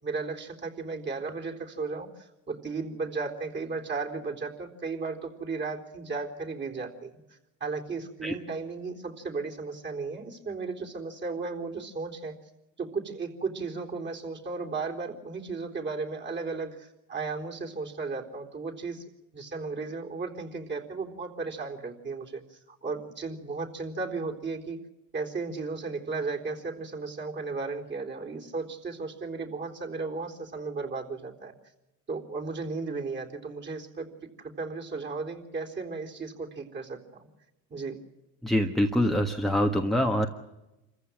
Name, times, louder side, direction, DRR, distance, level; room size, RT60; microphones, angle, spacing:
voice 1, 0.0-7.2 7.6-12.3 12.8-19.0 19.3-24.8 25.1-31.5 32.1-34.1 34.4-37.3 37.7-38.0, right 4 dB, 25° right, 2 dB, 3.9 m, -35 dB
voice 2, 38.4-40.3, equal, ahead, 4 dB, 1.4 m, -25 dB
26.5 x 15.0 x 7.7 m, 0.97 s
supercardioid pair, 105°, 39 cm